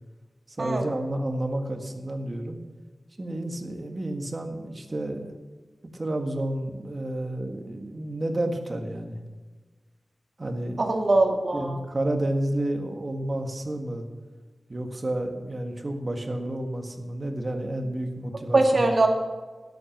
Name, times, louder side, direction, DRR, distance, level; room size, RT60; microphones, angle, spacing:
voice 1, 0.5-2.6 3.2-5.3 5.8-9.2 10.4-10.8 11.5-14.1 14.7-18.9, right 1 dB, 35° right, 4 dB, 1.7 m, -30 dB
voice 2, 10.8-11.8 18.5-19.1, right 2 dB, 50° right, 2 dB, 2.1 m, -21 dB
12.5 x 10.5 x 6.1 m, 1.3 s
wide cardioid pair, 105°, 0 cm